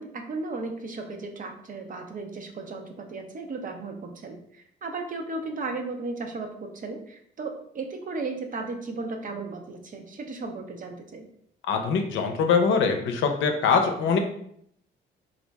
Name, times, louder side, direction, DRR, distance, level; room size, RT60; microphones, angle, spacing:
voice 1, 0.0-11.3, right 3 dB, 45° right, 4 dB, 0.6 m, -35 dB
voice 2, 11.7-14.2, left 5 dB, 80° left, 5 dB, 0.6 m, -23 dB
3.0 x 2.5 x 3.4 m, 0.68 s
cardioid pair, 90°, 20 cm